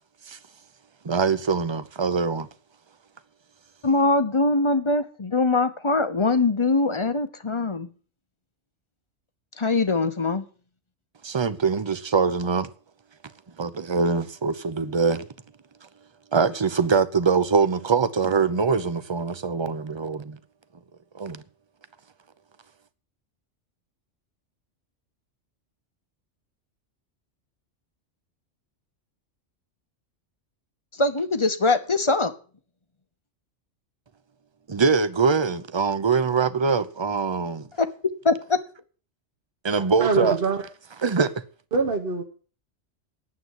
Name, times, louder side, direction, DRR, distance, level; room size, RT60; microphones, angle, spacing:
voice 1, 1.0-2.5 11.2-12.7 13.6-15.3 16.3-20.4 21.1-21.4 34.7-37.7 39.6-40.4 41.0-41.4, right 5 dB, 25° right, 0.7 m, -23 dB
voice 2, 3.8-7.9 9.6-10.4 31.0-32.3 37.8-37.9 38.2-38.6, left 3 dB, 25° left, 0.9 m, -22 dB
voice 3, 40.0-40.6 41.7-42.2, right 4 dB, 50° right, 1.4 m, -24 dB
9.6 x 7.8 x 9.5 m
omnidirectional pair, 1.2 m